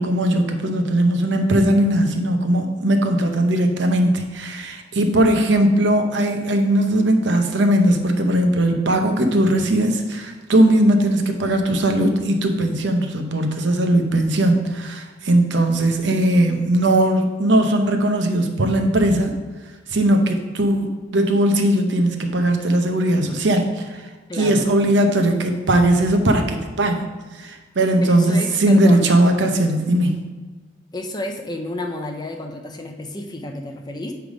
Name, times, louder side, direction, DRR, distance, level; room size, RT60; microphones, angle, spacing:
voice 1, 0.0-19.3 19.9-24.0 24.4-27.1 27.4-30.2, right 1 dB, 75° right, 5 dB, 0.8 m, -19 dB
voice 2, 24.3-24.7 28.0-29.2 30.9-34.1, left 1 dB, 20° left, 3 dB, 0.6 m, -31 dB
7.9 x 3.5 x 5.0 m, 1.3 s
head